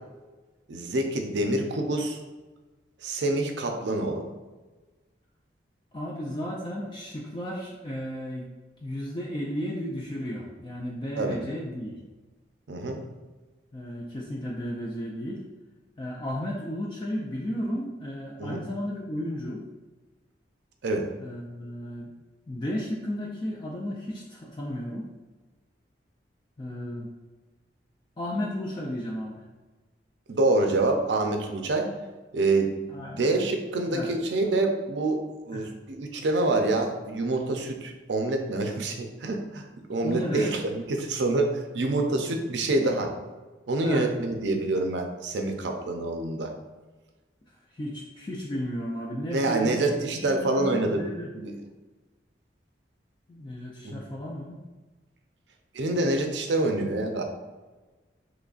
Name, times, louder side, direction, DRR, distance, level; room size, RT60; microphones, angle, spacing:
voice 1, 0.7-2.2 3.0-4.2 11.2-11.4 12.7-13.0 18.4-18.6 20.8-21.1 30.3-31.9 32.3-35.2 35.5-39.6 39.9-43.1 43.7-46.5 49.3-51.1 51.3-51.5 53.8-54.0 55.7-57.2, right 2 dB, 75° right, 4 dB, 0.5 m, -26 dB
voice 2, 5.9-8.5 8.8-12.0 13.7-15.4 16.0-19.6 21.2-22.1 22.5-25.1 26.6-27.1 28.2-29.4 32.9-33.4 33.9-34.1 35.5-35.7 40.0-40.5 43.8-44.1 47.7-51.3 53.3-54.6, equal, 25° left, -3 dB, 0.3 m, -33 dB
3.8 x 3.1 x 2.4 m, 1.2 s
head